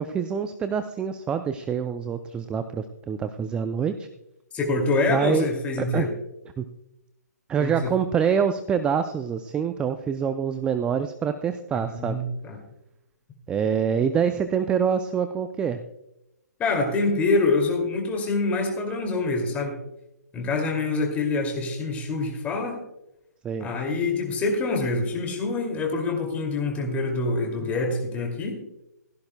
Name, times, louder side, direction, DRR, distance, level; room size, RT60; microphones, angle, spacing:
voice 1, 0.0-4.1 5.1-5.5 5.8-6.1 6.6-6.7 7.5-12.2 13.5-15.8 23.4-23.7, right 7 dB, 10° right, 9 dB, 0.4 m, -26 dB
voice 2, 4.5-6.1 7.6-7.9 11.7-12.6 16.6-19.8 20.3-22.8 23.6-28.6, left 3 dB, 15° left, 3 dB, 2.4 m, -26 dB
16.5 x 13.0 x 2.2 m, 0.88 s
hypercardioid pair, 140°, 9 cm